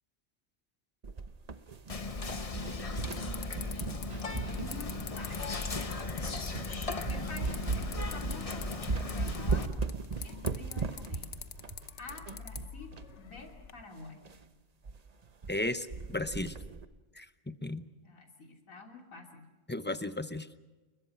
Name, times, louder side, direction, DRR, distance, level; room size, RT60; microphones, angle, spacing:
sound 1, 1.0-2.2 2.5-5.5 6.0-6.1 6.5-6.7 7.1-13.1 13.4-13.5 13.7-13.8 14.3-14.4 14.8-15.0 15.2-15.6 15.9-16.9, right 4 dB, 35° right, 0.9 m, -37 dB
Whispering, 1.9-9.7, left 3 dB, 30° left, 1.2 m, -37 dB
sound 2, 2.2-13.7, left 7 dB, 60° left, 1.3 m, -47 dB
voice 1, 4.5-5.7 7.1-9.8 10.2-11.4 12.0-14.2 18.0-19.5, left 3 dB, 80° left, 3 dB, 3.4 m, -49 dB
voice 2, 15.5-15.9 16.1-16.6 17.1-17.8 19.7-20.6, left 2 dB, 10° left, 12 dB, 0.6 m, -34 dB
29.5 x 22.0 x 5.9 m, 1.2 s
omnidirectional pair, 1.4 m